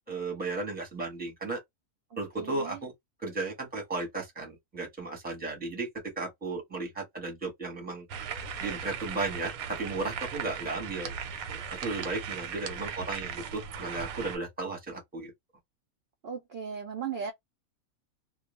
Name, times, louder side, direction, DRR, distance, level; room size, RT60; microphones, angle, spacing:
voice 1, 0.1-1.6 2.2-2.9 3.2-5.9 6.2-8.0 8.6-11.1 11.5-15.3, right 3 dB, 10° right, 0.8 m, -35 dB
voice 2, 2.4-2.8 16.2-17.3, right 6 dB, 70° right, 0.6 m, -36 dB
sound 1, 8.1-14.4, right 7 dB, 85° right, 1.1 m, -38 dB
2.3 x 2.0 x 3.0 m
omnidirectional pair, 1.5 m